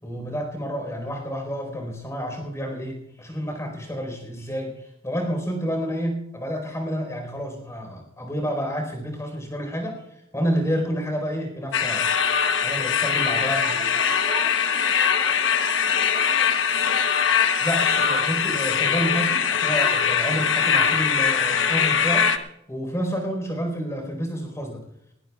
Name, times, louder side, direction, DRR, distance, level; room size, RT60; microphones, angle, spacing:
voice 1, 0.0-10.0 10.3-12.1 12.6-13.8 17.6-22.3 22.7-24.8, equal, 15° left, 2 dB, 4.5 m, -29 dB
sound 1, 11.7-22.4, left 7 dB, 80° left, 1.0 m, -22 dB
voice 2, 13.4-17.3, right 3 dB, 35° right, 4 dB, 1.0 m, -40 dB
19.0 x 18.5 x 2.4 m, 0.78 s
head